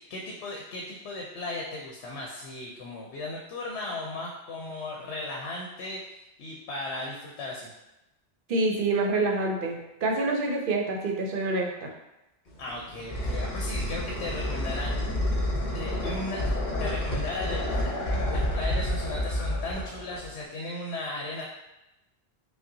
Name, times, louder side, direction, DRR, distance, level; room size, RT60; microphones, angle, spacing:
voice 1, 0.0-7.7 12.6-14.9 15.7-16.5 16.8-21.4, left 2 dB, 85° left, -1 dB, 0.9 m, -36 dB
voice 2, 8.5-11.9, right 2 dB, 60° right, 2 dB, 0.7 m, -27 dB
sound 1, 12.5-20.4, left 1 dB, 50° left, 1.0 m, -29 dB
5.2 x 2.1 x 2.6 m, 0.95 s
omnidirectional pair, 1.1 m